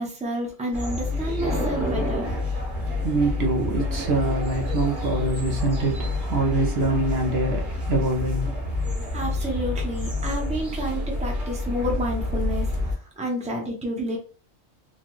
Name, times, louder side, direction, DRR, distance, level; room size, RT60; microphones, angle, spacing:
voice 1, 0.0-2.3 9.1-12.7 13.2-14.2, equal, 5° right, 0.7 m, -29 dB
sound 1, 0.7-12.9, left 2 dB, 45° right, 1.3 m, -28 dB
voice 2, 3.0-8.6, right 3 dB, 60° right, 0.9 m, -25 dB
4.1 x 2.2 x 3.0 m
omnidirectional pair, 1.3 m